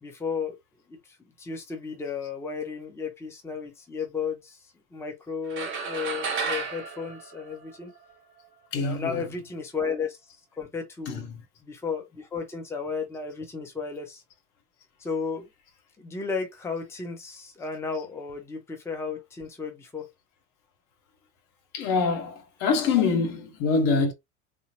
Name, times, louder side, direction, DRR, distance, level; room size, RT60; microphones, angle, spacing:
voice 1, 0.0-0.6 0.9-4.6 4.9-7.9 8.7-10.2 10.6-11.3 11.6-14.2 15.0-15.5 16.0-20.1, left 5 dB, 5° left, 0.8 m, -34 dB
sound 1, 5.5-8.1, right 5 dB, 30° right, 1.0 m, -32 dB
voice 2, 8.7-9.1 11.1-11.2 21.7-24.1, left 4 dB, 40° left, 0.8 m, -25 dB
3.8 x 2.0 x 2.9 m
figure-of-eight pair, 80°, 43 cm